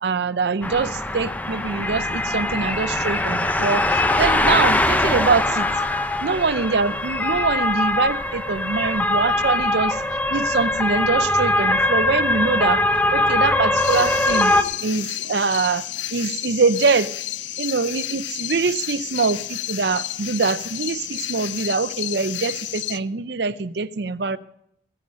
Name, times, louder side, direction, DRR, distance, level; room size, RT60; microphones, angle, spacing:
voice 1, 0.0-5.7 6.2-10.0 10.3-12.8 13.1-14.5 14.8-15.8 16.1-17.1 17.6-24.4, right 4 dB, 60° right, 16 dB, 0.5 m, -23 dB
sound 1, 0.6-14.6, left 2 dB, 10° left, 0.5 m, -22 dB
sound 2, 13.7-23.0, left 13 dB, 70° left, 0.5 m, -31 dB
15.0 x 10.5 x 5.2 m, 0.74 s
head